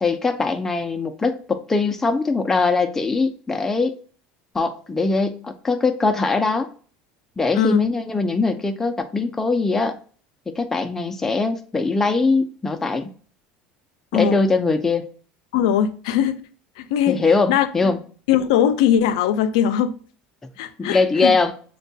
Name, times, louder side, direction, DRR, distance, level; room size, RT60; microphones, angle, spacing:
voice 1, 0.0-4.0 4.5-6.7 7.4-10.0 10.5-13.1 14.1-15.1 17.1-18.0 20.8-21.5, left 3 dB, 10° left, 0.3 m, -21 dB
voice 2, 7.5-7.9 14.1-14.4 15.5-16.4 16.8-17.2 17.5-17.9 18.3-20.0 20.6-21.4, left 9 dB, 90° left, 0.4 m, -20 dB
6.2 x 2.2 x 2.6 m
supercardioid pair, 130°, 3 cm